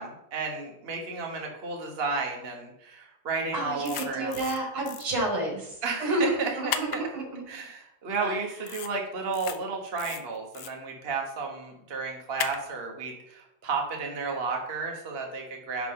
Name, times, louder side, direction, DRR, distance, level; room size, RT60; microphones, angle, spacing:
voice 1, 0.0-4.4 5.8-7.1 7.5-15.9, right 4 dB, 35° right, 1 dB, 1.0 m, -33 dB
voice 2, 3.5-7.4 8.2-8.4, right 1 dB, 70° right, -1 dB, 3.2 m, -30 dB
sound 1, 3.8-4.6 4.9-5.0 6.7-7.0 8.7-8.9 9.3-9.6 10.0-10.7 12.4-12.6, left 9 dB, 75° left, 0.9 m, -34 dB
10.5 x 4.1 x 3.7 m, 0.78 s
omnidirectional pair, 2.3 m